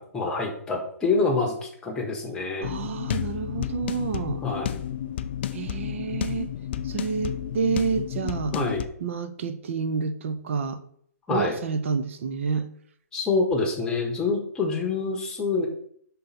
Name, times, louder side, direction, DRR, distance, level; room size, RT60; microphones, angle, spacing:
voice 1, 0.0-2.7 4.4-4.8 8.5-8.8 11.3-11.5 13.1-15.7, left 3 dB, 10° left, 1.1 m, -26 dB
sound 1, 2.6-8.9, left 10 dB, 40° left, 0.4 m, -31 dB
voice 2, 2.6-4.4 5.5-6.6 6.8-8.6 9.0-10.8 11.3-12.7, right 6 dB, 50° right, 0.7 m, -29 dB
5.6 x 3.9 x 5.7 m
hypercardioid pair, 160°, 9 cm